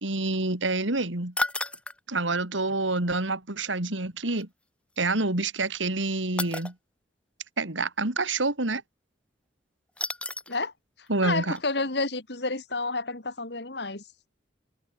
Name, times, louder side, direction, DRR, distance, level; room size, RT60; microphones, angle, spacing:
voice 1, 0.0-1.3 2.1-4.5 5.0-6.7 7.6-8.8 11.1-11.6, right 2 dB, 90° right, 3.1 m, -27 dB
sound 1, 1.4-2.0 4.4-4.5 6.4-6.7 10.0-10.6 11.1-11.2 11.5-11.6, left 2 dB, 5° left, 1.9 m, -31 dB
voice 2, 11.0-14.0, left 3 dB, 65° left, 2.3 m, -30 dB
head